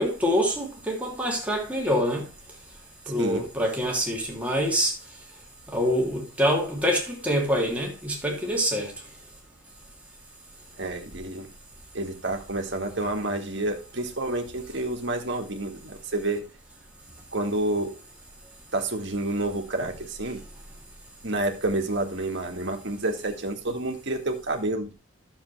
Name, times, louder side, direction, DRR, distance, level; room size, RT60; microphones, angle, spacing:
voice 1, 0.0-2.3 3.1-4.9 5.7-8.9, equal, 5° right, 2.7 m, -25 dB
voice 2, 10.7-11.5 11.9-16.4 17.3-17.9 18.7-20.4 21.2-24.9, right 2 dB, 55° right, 1.9 m, -29 dB
11.5 x 7.3 x 3.3 m
head